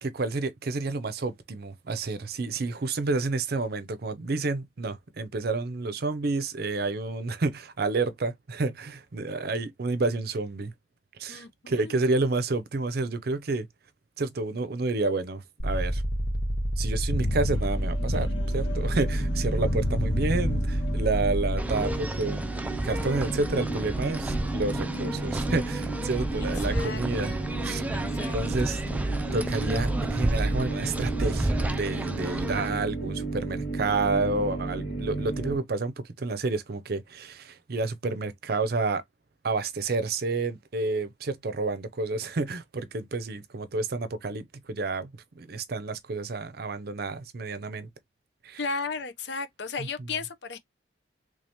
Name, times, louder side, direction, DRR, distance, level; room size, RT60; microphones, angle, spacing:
voice 1, 0.0-10.7 11.2-13.7 14.2-16.0 16.8-22.5 22.8-27.3 27.6-27.8 28.3-28.8 29.3-39.0 39.4-47.9 48.4-48.6 49.8-50.1, right 3 dB, 55° right, 0.6 m, -30 dB
voice 2, 11.3-12.0 26.7-27.0 27.3-27.4 27.9-28.3 48.6-50.6, left 4 dB, 70° left, 0.7 m, -34 dB
sound 1, 15.6-21.6, equal, 45° left, 1.0 m, -27 dB
sound 2, 17.5-35.6, right 2 dB, 85° left, 2.0 m, -34 dB
sound 3, 21.6-32.7, right 1 dB, 10° right, 0.4 m, -31 dB
3.3 x 2.8 x 3.4 m
head